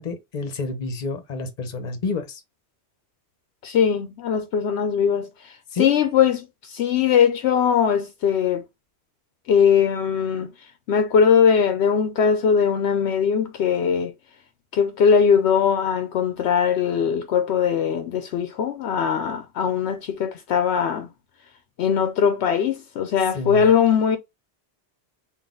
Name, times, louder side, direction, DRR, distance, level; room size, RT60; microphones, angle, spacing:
voice 1, 0.0-2.4 5.7-5.9 23.3-23.7, left 3 dB, 40° left, 0.9 m, -29 dB
voice 2, 3.6-5.5 5.8-8.6 9.5-10.5 10.9-14.1 14.7-21.1 21.8-24.2, left 7 dB, 75° left, 0.8 m, -20 dB
3.9 x 2.5 x 3.6 m
omnidirectional pair, 1.1 m